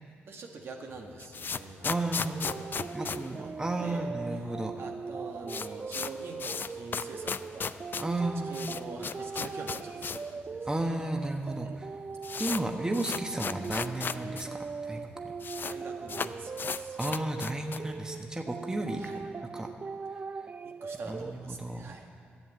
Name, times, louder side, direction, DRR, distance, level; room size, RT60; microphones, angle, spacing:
voice 1, 0.3-4.1 4.4-7.8 8.2-10.9 15.5-17.0 19.0-19.2 20.6-22.1, right 3 dB, 65° right, 2 dB, 1.4 m, -45 dB
sound 1, 0.9-4.2 4.4-4.5 4.8-4.9 5.2-10.3 10.6-10.7 11.4-11.5 11.8-14.5 14.7-14.8 15.0-15.8 16.1-18.0, left 6 dB, 50° left, 0.4 m, -36 dB
voice 2, 1.8-2.4 2.9-4.7 8.0-8.6 10.7-11.9 12.4-15.3 17.0-19.2 19.5-19.7 21.0-21.9, right 1 dB, 15° right, 3 dB, 1.1 m, -33 dB
sound 2, 2.3-21.3, right 5 dB, 35° right, 0.3 m, -40 dB
11.0 x 7.3 x 8.2 m, 2.2 s
supercardioid pair, 55°, 4 cm